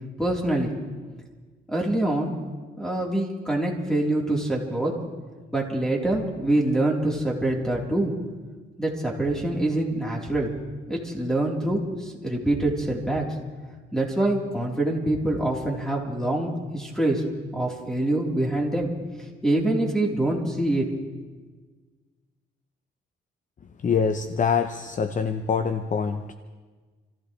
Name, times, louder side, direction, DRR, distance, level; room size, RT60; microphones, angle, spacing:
voice 1, 0.2-0.8 1.7-2.3 2.8-4.9 5.5-8.1 8.8-10.5 10.9-13.3 13.9-17.2 17.5-18.9 19.2-20.9, right 1 dB, 5° left, -2 dB, 3.8 m, -25 dB
voice 2, 23.8-26.3, left 6 dB, 40° left, 8 dB, 0.8 m, -25 dB
28.5 x 15.5 x 3.3 m, 1.4 s
cardioid pair, 90°, 20 cm